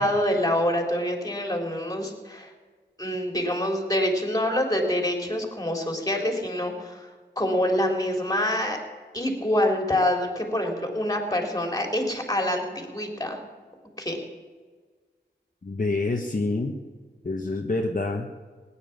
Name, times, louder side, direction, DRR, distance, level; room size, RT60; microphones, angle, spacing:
voice 1, 0.0-2.5 3.0-7.1 7.4-8.8 9.1-13.4 14.0-14.2, left 1 dB, 20° left, 3 dB, 3.8 m, -26 dB
voice 2, 15.6-16.7 17.2-18.3, left 2 dB, 45° left, 2 dB, 1.4 m, -27 dB
18.0 x 10.5 x 7.3 m, 1.5 s
wide cardioid pair, 55°, 19 cm